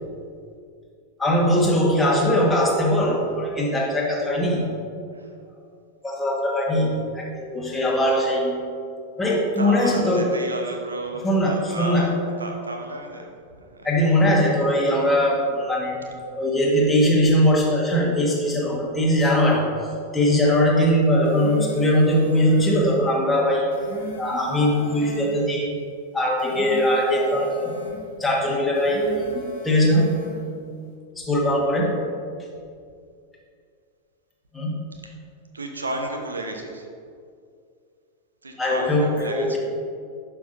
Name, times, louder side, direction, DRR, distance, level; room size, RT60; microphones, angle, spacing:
voice 1, 1.2-4.8 6.0-8.6 9.2-10.4 11.2-12.1 13.8-16.1 16.4-19.7 20.1-23.7 24.2-25.8 26.1-27.8 28.2-30.3 31.2-32.0 34.5-34.8 38.6-39.6, equal, 10° left, -3 dB, 1.5 m, -21 dB
voice 2, 9.6-14.1 14.8-15.0 16.1-16.2 22.2-22.4 35.0-35.1 35.5-36.9 38.4-39.6, right 2 dB, 75° right, 3 dB, 0.9 m, -33 dB
sound 1, 21.1-22.9 23.5-25.3 26.2-28.0 28.6-30.4, left 1 dB, 55° left, 1.3 m, -40 dB
11.0 x 5.8 x 2.6 m, 2.3 s
figure-of-eight pair, 90°, 0 cm